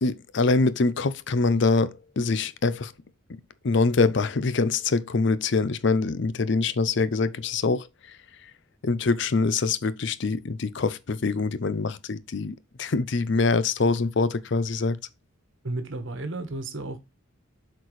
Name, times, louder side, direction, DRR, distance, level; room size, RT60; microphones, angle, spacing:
voice 1, 0.0-2.9 3.6-7.9 8.8-15.0, left 3 dB, 60° left, 0.5 m, -24 dB
voice 2, 15.6-17.0, right 2 dB, 65° right, 1.3 m, -32 dB
7.9 x 4.4 x 3.1 m
head